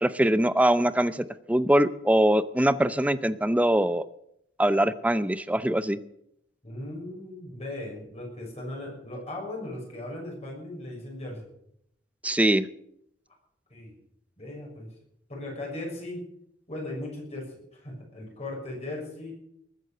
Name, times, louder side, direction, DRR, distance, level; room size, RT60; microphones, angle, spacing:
voice 1, 0.0-4.1 4.6-6.0 12.2-12.7, right 1 dB, 10° right, 14 dB, 0.6 m, -23 dB
voice 2, 6.6-11.5 13.7-13.9 14.4-14.9 15.3-16.2 16.7-19.3, left 1 dB, 35° left, -1 dB, 6.4 m, -38 dB
20.5 x 9.1 x 6.7 m, 0.75 s
head